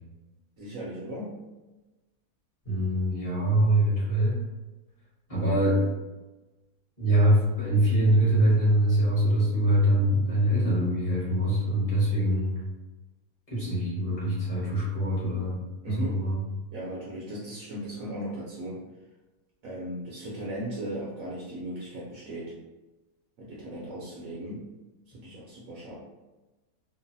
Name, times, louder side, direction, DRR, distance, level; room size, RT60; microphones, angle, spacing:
voice 1, 0.6-1.4 15.8-16.2 16.7-18.8 19.6-22.6 23.4-24.7 25.1-26.0, right 1 dB, 70° right, -5 dB, 0.9 m, -37 dB
voice 2, 2.6-4.4 5.3-5.8 7.0-12.5 13.5-15.6 15.8-16.3, right 1 dB, 25° left, -9 dB, 0.9 m, -24 dB
3.0 x 2.0 x 2.6 m, 1.1 s
omnidirectional pair, 1.7 m